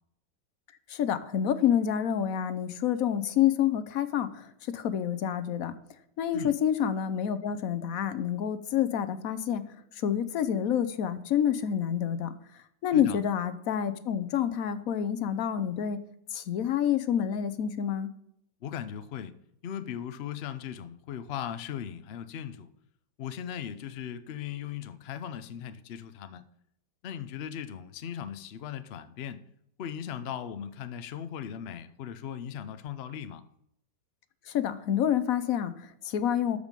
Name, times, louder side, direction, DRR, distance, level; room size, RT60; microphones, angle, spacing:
voice 1, 0.9-5.7 6.2-9.6 9.9-16.0 16.3-18.1 34.5-36.6, left 9 dB, 60° left, 1.0 m, -28 dB
voice 2, 18.6-19.3 19.6-22.7 23.2-26.4 27.0-29.4 29.8-33.4, left 9 dB, 85° left, 0.5 m, -38 dB
13.0 x 5.2 x 5.2 m
omnidirectional pair, 2.0 m